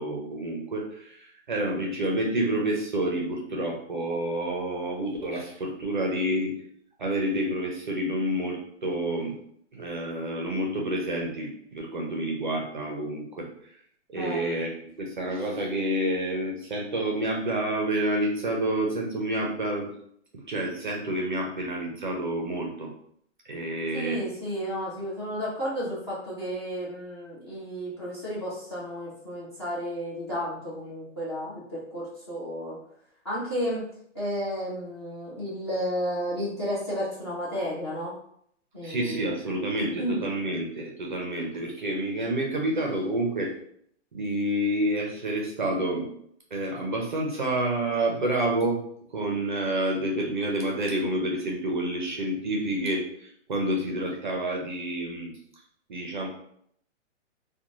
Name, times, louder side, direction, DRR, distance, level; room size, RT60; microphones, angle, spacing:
voice 1, 0.0-6.5 7.0-9.4 9.7-13.5 14.1-19.9 20.3-22.9 23.5-24.2 38.8-43.5 44.1-46.1 46.5-48.8 49.1-55.3 55.9-56.3, right 1 dB, 40° right, -1 dB, 0.4 m, -29 dB
voice 2, 14.1-14.5 23.9-32.8 33.2-38.1 38.7-39.3 40.0-40.2, equal, 20° left, -8 dB, 0.5 m, -32 dB
2.5 x 2.1 x 2.9 m, 0.68 s
hypercardioid pair, 175°, 37 cm